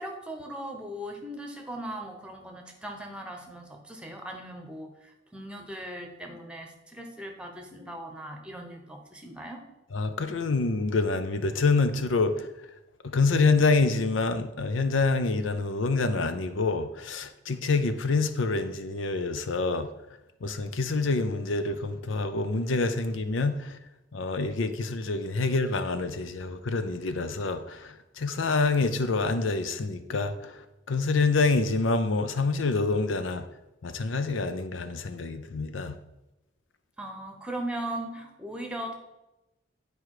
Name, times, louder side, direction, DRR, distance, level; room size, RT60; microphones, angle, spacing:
voice 1, 0.0-9.6 37.0-38.9, right 1 dB, 5° right, 1.0 m, -38 dB
voice 2, 9.9-12.5 13.0-19.9 20.4-23.8 24.1-30.6 30.9-33.5 33.8-36.0, left 3 dB, 85° left, 0.6 m, -26 dB
9.7 x 4.7 x 4.8 m
head